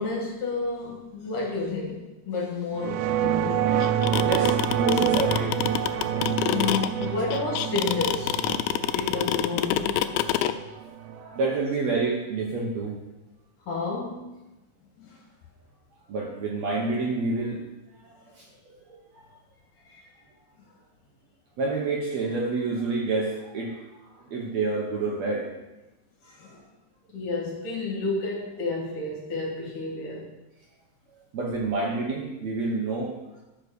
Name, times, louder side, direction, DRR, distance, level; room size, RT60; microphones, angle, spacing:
voice 1, 0.0-3.9 6.4-8.4 8.9-10.0 13.7-14.3 15.0-15.2 19.9-20.0 26.2-26.6 27.1-30.3, left 3 dB, 70° left, -2 dB, 3.1 m, -31 dB
sound 1, 2.8-11.4, right 9 dB, 80° right, 1.9 m, -27 dB
sound 2, 3.8-10.5, left 14 dB, 85° left, 1.6 m, -25 dB
voice 2, 4.2-5.7 11.0-13.0 16.1-17.6 18.3-19.2 21.6-25.5 31.3-33.2, right 3 dB, 60° right, -1 dB, 2.1 m, -28 dB
12.0 x 5.2 x 6.8 m, 1.0 s
omnidirectional pair, 3.9 m